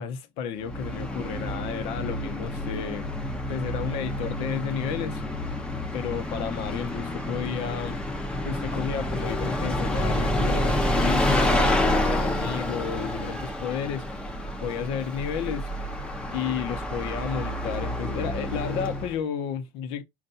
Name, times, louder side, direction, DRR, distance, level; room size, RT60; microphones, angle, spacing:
voice 1, 0.0-3.1 3.5-5.2 5.9-8.0 8.4-14.2 14.6-15.7 16.3-20.0, left 7 dB, 65° left, 0.9 m, -32 dB
Bus, 0.6-19.2, left 1 dB, 10° left, 0.8 m, -28 dB
5.5 x 2.5 x 2.6 m
cardioid pair, 135°, 11 cm